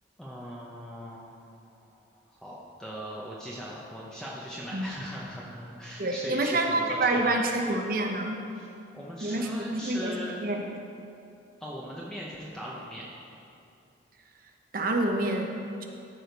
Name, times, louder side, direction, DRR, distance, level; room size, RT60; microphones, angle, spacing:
voice 1, 0.2-7.4 8.6-8.7 8.9-10.4 11.6-13.1, equal, 5° left, -6 dB, 0.9 m, -40 dB
voice 2, 6.0-8.4 9.2-10.6 14.7-15.5 15.8-15.9, right 2 dB, 55° right, 3 dB, 1.0 m, -27 dB
13.5 x 5.0 x 5.2 m, 2.6 s
head